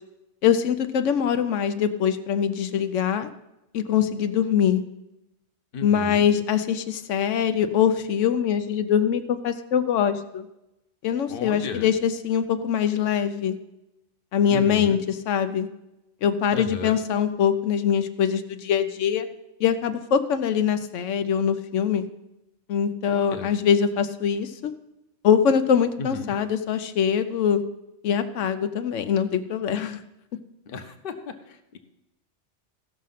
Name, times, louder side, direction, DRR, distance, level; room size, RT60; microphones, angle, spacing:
voice 1, 0.4-3.3 3.7-4.8 5.8-10.5 11.0-13.6 14.3-15.7 16.2-19.2 19.6-22.1 22.7-24.7 25.2-27.6 28.0-30.0, left 8 dB, 90° left, 9 dB, 1.0 m, -23 dB
voice 2, 5.7-6.3 11.3-11.9 14.5-15.0 16.5-17.0 23.1-23.5 26.0-26.3 30.7-31.8, left 4 dB, 50° left, 7 dB, 1.0 m, -34 dB
15.0 x 6.3 x 5.7 m, 0.91 s
omnidirectional pair, 1.2 m